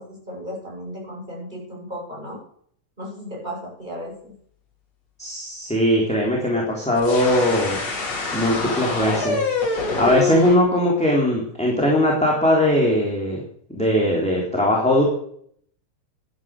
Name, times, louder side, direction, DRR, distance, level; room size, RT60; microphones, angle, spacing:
voice 1, 0.0-2.4 3.0-4.3, equal, 15° right, -3 dB, 7.5 m, -35 dB
voice 2, 5.2-7.8 8.3-9.4 10.0-13.4 13.7-15.0, left 1 dB, ahead, -3 dB, 3.4 m, -20 dB
sound 1, 7.0-10.6, left 3 dB, 60° left, 4.2 m, -26 dB
13.5 x 11.5 x 6.7 m, 0.63 s
omnidirectional pair, 3.5 m